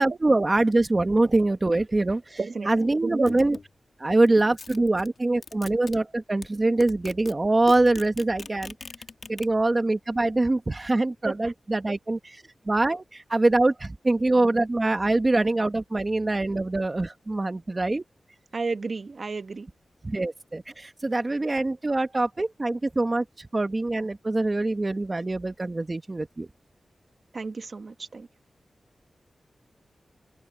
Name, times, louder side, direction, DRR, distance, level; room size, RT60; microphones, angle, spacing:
voice 1, 0.0-3.6 4.0-8.7 9.3-18.0 20.0-26.5, right 2 dB, 35° right, 1.4 m, -24 dB
voice 2, 2.4-2.7 3.0-3.2 18.5-19.7 27.3-28.3, right 4 dB, 55° right, 1.7 m, -31 dB
sound 1, 3.2-3.7 4.3-6.0 6.4-6.5 6.8-7.3 7.6-9.5, left 4 dB, 65° left, 2.2 m, -41 dB
open air
wide cardioid pair, 70°, 0 cm